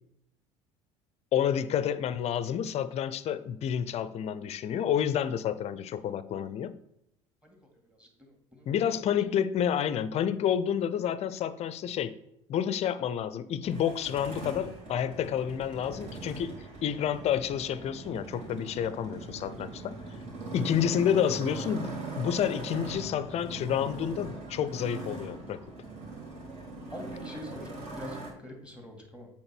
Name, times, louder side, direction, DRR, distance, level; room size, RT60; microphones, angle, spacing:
voice 1, 1.3-6.7 8.7-12.1 12.5-16.5 16.8-20.0 20.5-25.6, left 9 dB, 45° left, 15 dB, 0.6 m, -29 dB
voice 2, 8.0-8.7 18.8-19.0 20.4-20.6 26.9-29.3, equal, 5° right, 2 dB, 2.3 m, -45 dB
Motorcycle, 13.6-28.3, right 3 dB, 45° right, 3.2 m, -41 dB
7.8 x 3.6 x 6.0 m, 0.80 s
hypercardioid pair, 70°, 16 cm